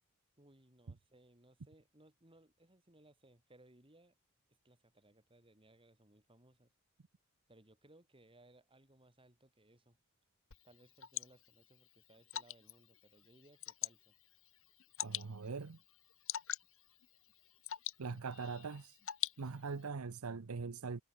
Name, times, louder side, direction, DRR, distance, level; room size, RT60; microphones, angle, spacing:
voice 1, 0.4-4.2 4.5-6.7 7.5-10.0 10.6-14.2, right 1 dB, 25° right, 7.5 m, -65 dB
Water / Drip, 10.5-19.9, left 12 dB, 65° left, 1.7 m, -46 dB
voice 2, 15.0-15.8 18.0-19.0 19.4-21.0, right 4 dB, 90° right, 0.7 m, -42 dB
head